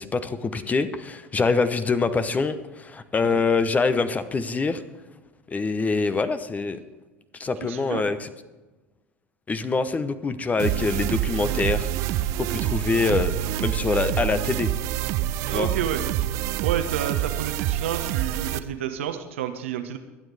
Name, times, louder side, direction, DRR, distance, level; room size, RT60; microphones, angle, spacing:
voice 1, 0.0-4.8 5.5-6.8 7.4-8.3 9.5-14.7 15.5-15.7, left 4 dB, 20° left, 12 dB, 1.0 m, -25 dB
voice 2, 7.6-8.1 15.5-16.0 16.6-20.0, right 10 dB, 70° right, 7 dB, 1.2 m, -30 dB
sound 1, 10.6-18.6, right 13 dB, 55° right, 0.6 m, -27 dB
24.0 x 9.2 x 3.5 m, 1.2 s
figure-of-eight pair, 75°, 7 cm